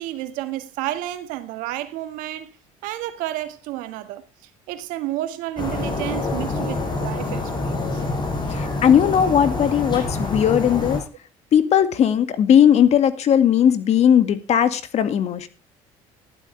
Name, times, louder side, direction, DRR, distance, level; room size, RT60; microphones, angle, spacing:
voice 1, 0.0-2.6 2.8-4.2 4.7-8.0, right 14 dB, 80° right, 1.7 m, -31 dB
sound 1, 5.6-11.0, left 3 dB, 35° left, 6.7 m, -26 dB
voice 2, 8.5-11.0 11.5-15.5, left 9 dB, 55° left, 2.0 m, -18 dB
15.0 x 12.0 x 3.3 m
supercardioid pair, 90°, 13 cm